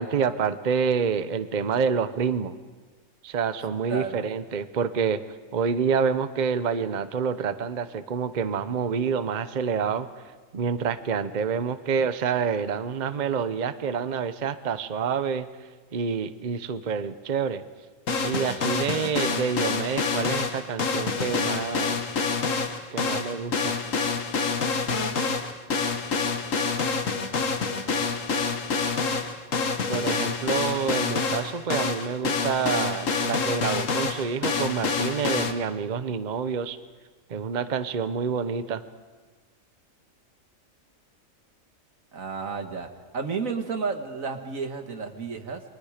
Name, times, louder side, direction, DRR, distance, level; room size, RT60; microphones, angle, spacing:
voice 1, 0.0-2.5 3.2-5.2 5.5-10.1 10.5-15.5 15.9-17.6 18.2-22.0 22.9-23.8 29.9-36.8 37.3-38.8, right 6 dB, 40° right, 12 dB, 0.9 m, -27 dB
voice 2, 3.9-4.3 42.1-42.9 43.1-45.6, right 5 dB, 85° right, 6 dB, 2.0 m, -31 dB
sound 1, 18.1-35.5, left 4 dB, 75° left, 1.7 m, -27 dB
29.5 x 23.0 x 5.0 m, 1.4 s
omnidirectional pair, 1.4 m